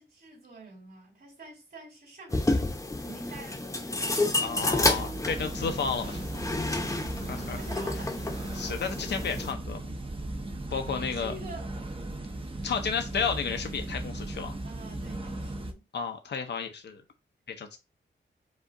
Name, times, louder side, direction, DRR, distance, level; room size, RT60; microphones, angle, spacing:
voice 1, 0.0-5.6 7.3-8.2 11.0-11.7 14.6-15.8, right 2 dB, 50° right, 2.4 m, -48 dB
sound 1, 2.3-9.5, left 2 dB, 15° left, 0.8 m, -30 dB
sound 2, 4.2-5.7, right 2 dB, 85° right, 2.3 m, -39 dB
voice 2, 4.4-6.2 7.3-7.6 8.5-9.8 10.7-11.3 12.6-14.5 15.9-17.0 17.5-17.8, left 6 dB, 60° left, 0.7 m, -32 dB
sound 3, 5.3-15.7, right 1 dB, 25° right, 0.7 m, -37 dB
5.2 x 2.4 x 3.7 m
wide cardioid pair, 110°, 20 cm